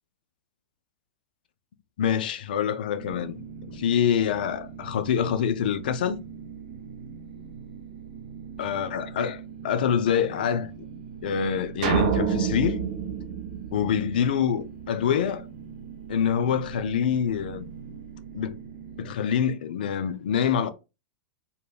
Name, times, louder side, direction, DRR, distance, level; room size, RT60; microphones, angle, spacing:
voice 1, 2.0-6.2 8.6-10.9 11.2-12.8 13.7-15.5 16.1-17.7 18.3-18.6 19.0-20.7, left 8 dB, 60° left, 0.4 m, -26 dB
sound 1, 3.0-19.1, right 7 dB, 70° right, 1.0 m, -42 dB
sound 2, 11.8-14.4, right 7 dB, 55° right, 0.4 m, -27 dB
2.2 x 2.1 x 3.2 m
figure-of-eight pair, 90°, 6 cm